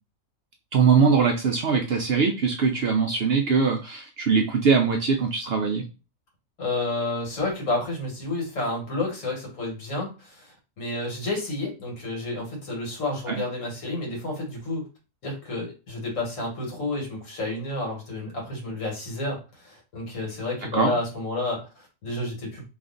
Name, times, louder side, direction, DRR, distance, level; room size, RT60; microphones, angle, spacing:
voice 1, 0.7-5.8 13.3-13.4 20.7-20.9, right 5 dB, 65° right, 3 dB, 0.6 m, -22 dB
voice 2, 6.6-14.9 15.2-22.7, left 2 dB, 70° left, 0 dB, 1.8 m, -30 dB
3.1 x 2.5 x 3.7 m, 0.31 s
omnidirectional pair, 1.4 m